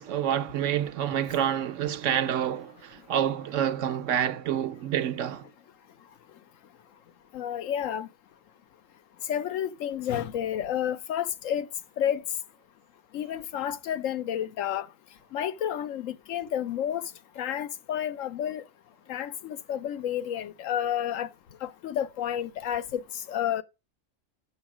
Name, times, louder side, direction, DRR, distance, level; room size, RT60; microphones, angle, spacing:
voice 1, 0.0-5.5, right 10 dB, 75° right, 1.0 m, -28 dB
voice 2, 7.3-8.1 9.3-11.7 12.0-12.2 13.1-14.9 15.3-17.0 17.4-18.6 19.1-21.3 21.6-23.0 23.3-23.6, left 10 dB, 85° left, 1.1 m, -30 dB
7.1 x 5.3 x 5.9 m
omnidirectional pair, 1.3 m